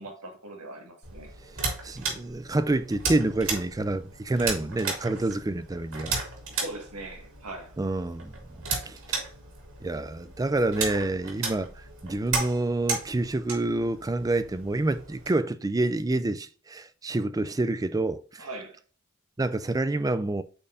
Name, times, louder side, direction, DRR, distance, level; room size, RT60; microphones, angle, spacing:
voice 1, 0.0-1.3 5.1-5.3 6.5-7.8 9.1-9.3 18.4-18.8, right 2 dB, 90° right, 1.7 m, -41 dB
sound 1, 1.0-15.3, right 4 dB, 60° right, 2.6 m, -35 dB
voice 2, 1.8-6.2 7.8-9.2 9.8-11.7 12.0-18.5 19.4-20.4, right 2 dB, 15° right, 0.4 m, -28 dB
8.6 x 4.4 x 2.5 m
head